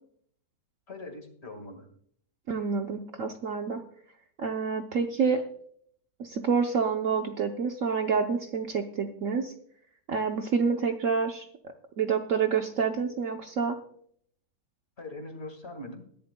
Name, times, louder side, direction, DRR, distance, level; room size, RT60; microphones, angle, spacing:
voice 1, 0.9-1.9 15.0-16.0, left 2 dB, 40° left, 5 dB, 1.9 m, -41 dB
voice 2, 2.5-3.8 4.4-5.4 6.2-9.5 10.1-11.5 12.0-13.8, right 5 dB, 60° right, 5 dB, 1.0 m, -28 dB
20.5 x 11.0 x 2.2 m, 0.64 s
omnidirectional pair, 1.8 m